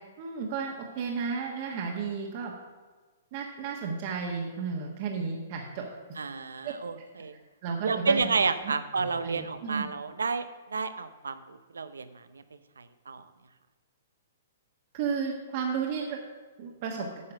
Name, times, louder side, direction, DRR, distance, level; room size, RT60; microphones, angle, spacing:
voice 1, 0.2-2.5 3.3-5.9 6.6-6.7 7.6-8.3 8.6-8.7 9.0-9.9 14.9-16.2 16.6-17.1, right 5 dB, 45° right, -1 dB, 1.4 m, -33 dB
voice 2, 6.2-7.3 7.8-10.4 10.7-12.0 12.3-12.4 12.8-13.2, right 4 dB, 90° right, 11 dB, 0.7 m, -30 dB
9.6 x 5.7 x 6.5 m, 1.4 s
hypercardioid pair, 135°, 0 cm